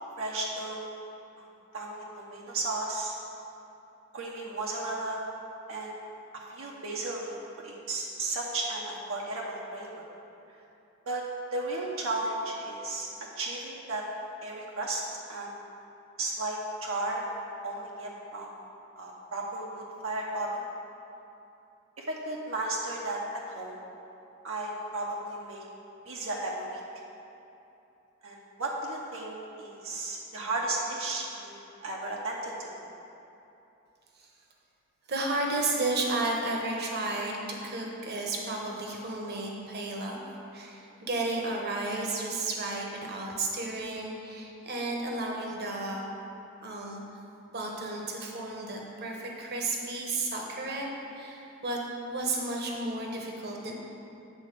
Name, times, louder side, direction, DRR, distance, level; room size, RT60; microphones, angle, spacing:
voice 1, 0.2-0.8 1.4-1.5 1.7-3.1 4.1-5.2 5.7-6.0 6.3-7.4 7.6-9.9 11.1-11.2 11.5-13.1 13.4-14.0 14.4-15.0 15.3-15.5 16.2-18.5 19.0-20.6 22.0-23.8 24.4-25.6 26.1-26.8 28.2-32.7, right 2 dB, 75° right, -2 dB, 0.9 m, -34 dB
voice 2, 35.1-40.2 40.5-46.1 46.6-47.0 47.5-50.9 51.1-51.8 52.1-53.7, right 2 dB, 50° right, -1 dB, 1.1 m, -33 dB
8.7 x 4.2 x 6.7 m, 2.9 s
head